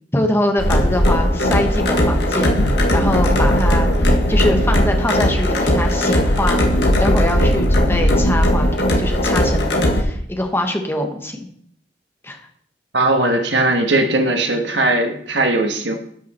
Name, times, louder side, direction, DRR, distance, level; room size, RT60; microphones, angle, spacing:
voice 1, 0.1-2.6 2.9-6.6 7.0-11.5 12.2-12.4, left 1 dB, 15° left, 4 dB, 1.2 m, -23 dB
sound 1, 0.6-10.0, equal, 70° left, 1.6 m, -17 dB
voice 2, 12.9-15.9, right 2 dB, 85° right, 4 dB, 1.4 m, -18 dB
12.0 x 5.9 x 4.3 m, 0.66 s
head